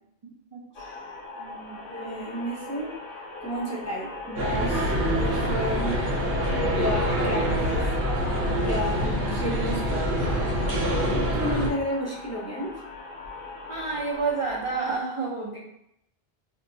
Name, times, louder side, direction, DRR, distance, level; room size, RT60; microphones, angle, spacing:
voice 1, 0.2-1.0 1.3-1.8 13.7-15.6, right 4 dB, 55° right, -2 dB, 0.3 m, -31 dB
sound 1, 0.7-15.0, left 2 dB, 65° left, 0.7 m, -38 dB
voice 2, 1.9-3.0 3.4-6.1 6.7-7.9 8.6-10.5 11.1-12.8, equal, 20° left, -6 dB, 0.5 m, -32 dB
sound 2, 4.4-11.7, equal, 70° right, 0.9 m, -25 dB
3.9 x 2.2 x 2.6 m, 0.80 s
omnidirectional pair, 1.0 m